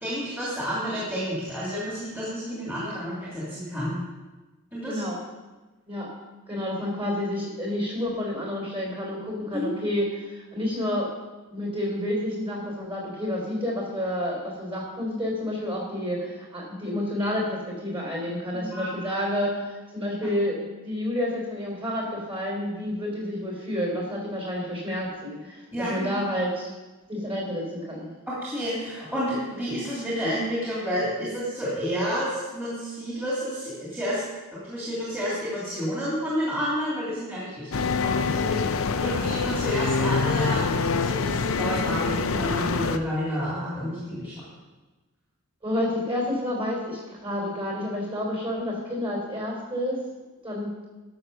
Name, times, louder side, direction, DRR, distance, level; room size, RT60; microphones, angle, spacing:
voice 1, 0.0-4.0 4.7-5.0 9.5-9.7 18.5-19.2 25.7-26.3 28.3-34.2 34.5-44.3, equal, 10° right, -8 dB, 2.7 m, -30 dB
voice 2, 6.5-11.1 11.5-26.7 27.1-28.1 45.6-50.0 50.4-50.9, left 1 dB, 25° right, -2 dB, 3.6 m, -29 dB
sound 1, 37.7-43.0, left 4 dB, 65° left, 0.5 m, -25 dB
12.0 x 6.4 x 6.7 m, 1.2 s
head